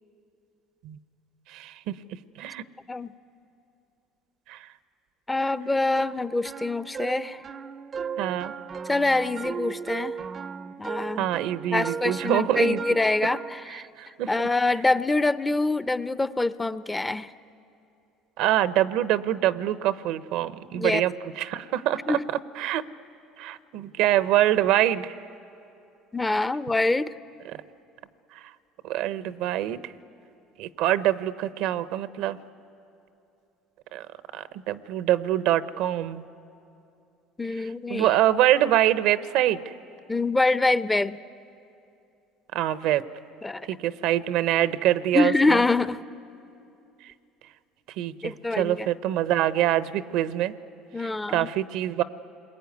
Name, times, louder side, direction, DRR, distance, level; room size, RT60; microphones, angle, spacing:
voice 1, 1.5-2.0 2.4-2.6 4.5-4.7 8.2-8.5 11.2-12.8 14.0-14.3 18.4-22.2 22.6-22.8 23.4-25.1 27.5-27.6 28.3-28.4 28.8-29.9 30.6-32.4 33.9-34.1 34.3-36.2 37.9-39.6 42.5-43.0 43.7-45.6 48.0-50.5 51.0-52.0, right 12 dB, 75° right, 14 dB, 0.8 m, -25 dB
voice 2, 5.3-7.4 8.8-10.2 10.8-11.3 11.7-13.9 14.3-17.3 20.7-21.0 22.1-22.3 26.1-27.1 37.4-38.1 40.1-41.2 43.4-43.7 45.1-46.0 48.2-48.9 50.9-51.5, left 2 dB, 15° left, 15 dB, 0.6 m, -25 dB
sound 1, 6.0-13.6, right 6 dB, 40° right, 0.5 m, -36 dB
28.5 x 21.5 x 9.4 m, 2.7 s
supercardioid pair, 90°, 0 cm